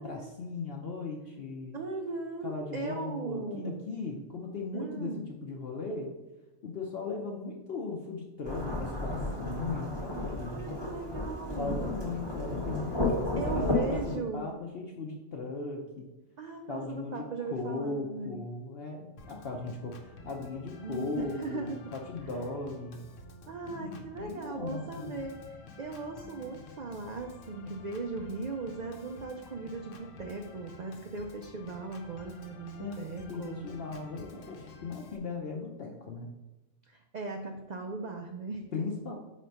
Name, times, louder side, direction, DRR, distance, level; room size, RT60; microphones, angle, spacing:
voice 1, 0.0-1.8 2.4-6.1 6.6-10.7 11.5-16.1 16.7-23.1 23.7-25.2 32.8-36.3 38.7-39.1, left 3 dB, 55° left, 0 dB, 0.8 m, -38 dB
voice 2, 1.7-3.8 4.7-5.3 10.4-11.9 13.4-14.5 16.4-18.5 20.8-21.8 23.5-33.7 36.9-38.7, right 3 dB, 60° right, 3 dB, 0.4 m, -38 dB
Thunderstorm / Rain, 8.4-14.2, left 2 dB, 20° left, 1.0 m, -32 dB
Organ, 19.2-35.2, left 3 dB, 75° left, 1.1 m, -50 dB
4.5 x 4.2 x 5.3 m, 1.0 s
omnidirectional pair, 1.3 m